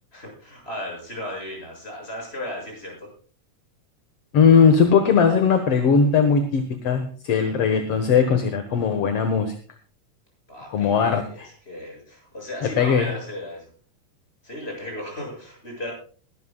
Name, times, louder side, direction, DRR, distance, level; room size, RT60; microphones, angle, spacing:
voice 1, 0.1-3.1 10.5-13.7 14.4-15.9, left 1 dB, 15° left, 0 dB, 7.4 m, -35 dB
voice 2, 4.3-9.5 10.7-11.5 12.6-13.1, left 6 dB, 55° left, 7 dB, 2.0 m, -19 dB
21.0 x 13.0 x 2.3 m, 0.41 s
omnidirectional pair, 3.8 m